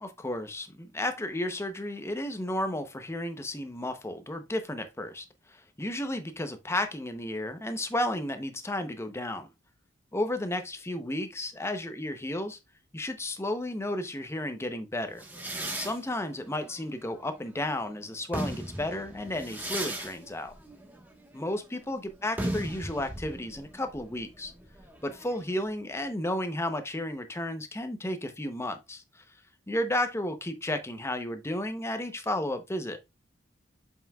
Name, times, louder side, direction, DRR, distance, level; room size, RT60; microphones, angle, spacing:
voice 1, 0.0-9.5 10.1-12.6 12.9-15.2 15.8-20.5 21.3-24.5 25.0-29.2 29.7-33.0, left 1 dB, 15° left, 0.7 m, -33 dB
sound 1, 15.2-17.7 18.1-25.6, right 1 dB, 10° right, 1.2 m, -38 dB
7.5 x 5.5 x 2.3 m
head